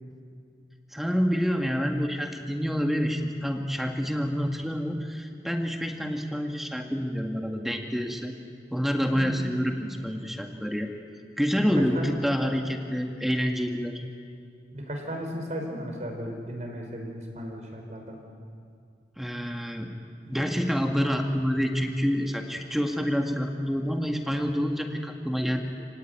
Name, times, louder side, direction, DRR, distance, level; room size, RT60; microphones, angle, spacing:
voice 1, 0.9-8.3 8.7-10.9 11.4-14.0 19.2-19.9 20.2-25.9, equal, ahead, 3 dB, 1.8 m, -27 dB
voice 2, 9.1-9.4 11.5-12.2 14.7-18.2, equal, 40° right, 2 dB, 5.0 m, -35 dB
30.0 x 18.0 x 9.6 m, 2.3 s
head